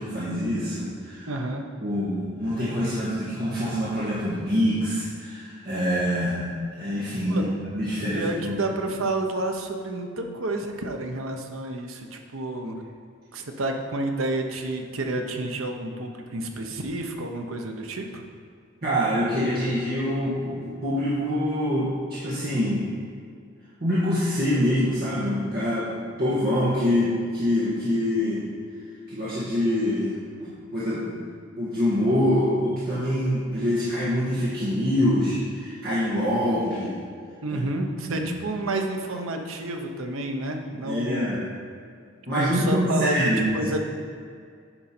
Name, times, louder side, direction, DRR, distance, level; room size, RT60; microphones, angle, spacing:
voice 1, 0.0-1.3 1.8-6.5 6.8-8.6 18.8-22.9 23.8-25.9 26.2-28.4 29.1-31.2 31.5-37.0 37.5-37.6 38.1-38.3 40.8-41.4 42.3-43.5, equal, 50° right, -10 dB, 1.5 m, -25 dB
voice 2, 1.3-1.7 7.3-7.5 8.1-12.8 13.3-18.2 37.4-41.4 42.3-43.1 43.5-43.9, right 2 dB, 90° right, 4 dB, 0.9 m, -30 dB
8.9 x 5.3 x 4.4 m, 2.2 s
head